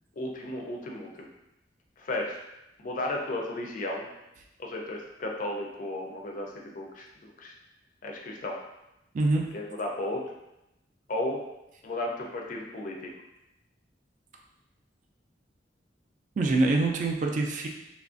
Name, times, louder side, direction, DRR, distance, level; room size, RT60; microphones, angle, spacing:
voice 1, 0.2-1.3 2.0-2.4 2.8-4.1 4.6-7.5 8.0-8.6 9.5-10.2 11.1-11.4 11.8-13.1, left 1 dB, 45° left, 0 dB, 0.4 m, -34 dB
voice 2, 9.1-9.5 16.4-17.7, right 2 dB, 45° right, 2 dB, 0.3 m, -25 dB
3.0 x 2.4 x 2.4 m, 0.90 s
head